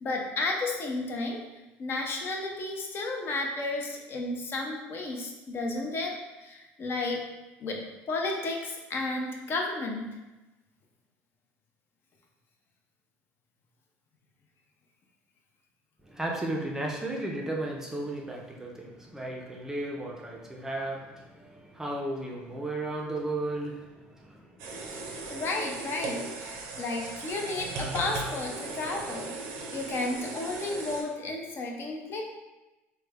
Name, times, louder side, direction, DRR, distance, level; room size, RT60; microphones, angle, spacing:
voice 1, 0.0-1.4 1.8-6.1 6.4-7.2 7.6-7.8 8.1-10.1 25.3-29.4 29.7-32.2, left 2 dB, 45° left, 1 dB, 0.6 m, -32 dB
voice 2, 16.0-25.3, right 1 dB, 10° right, -1 dB, 0.5 m, -35 dB
sound 1, 24.6-31.0, right 3 dB, 85° right, 0.5 m, -37 dB
3.2 x 2.1 x 3.4 m, 1.1 s
supercardioid pair, 100°, 5 cm